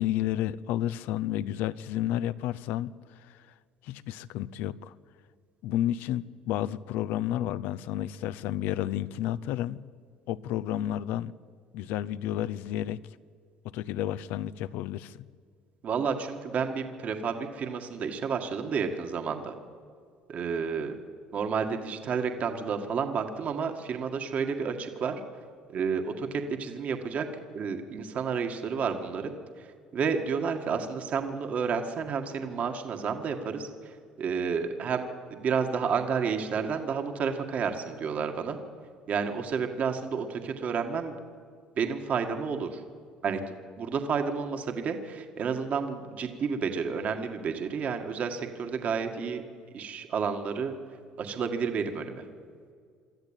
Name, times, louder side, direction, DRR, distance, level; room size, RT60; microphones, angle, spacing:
voice 1, 0.0-3.4 3.8-4.9 5.6-9.8 10.3-11.3 11.7-13.0 13.6-15.3, left 12 dB, 80° left, 0.6 m, -31 dB
voice 2, 15.8-19.5 20.3-21.0 21.3-25.2 25.7-27.3 27.5-29.7 29.9-33.7 34.2-38.6 39.1-41.1 41.8-42.8 43.2-43.4 43.8-49.4 49.7-50.7 51.2-52.2, right 6 dB, 50° right, 1.9 m, -30 dB
24.0 x 13.5 x 9.0 m
cardioid pair, 115°, 3 cm